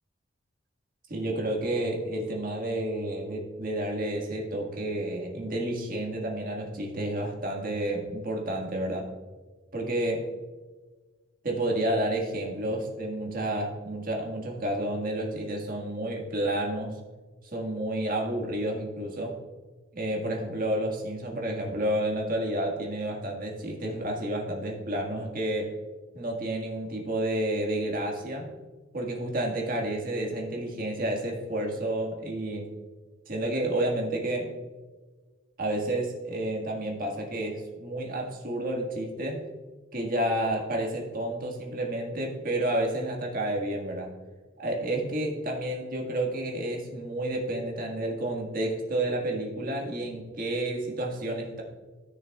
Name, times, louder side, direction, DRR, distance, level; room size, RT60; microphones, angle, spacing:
voice 1, 1.1-9.1 9.7-10.3 11.4-17.0 17.5-19.3 19.9-25.7 26.1-28.5 28.9-32.7 33.3-34.5 35.6-39.4 39.9-44.1 44.6-51.6, right 1 dB, 45° right, 0 dB, 1.7 m, -30 dB
14.5 x 6.4 x 2.4 m, 1.3 s
head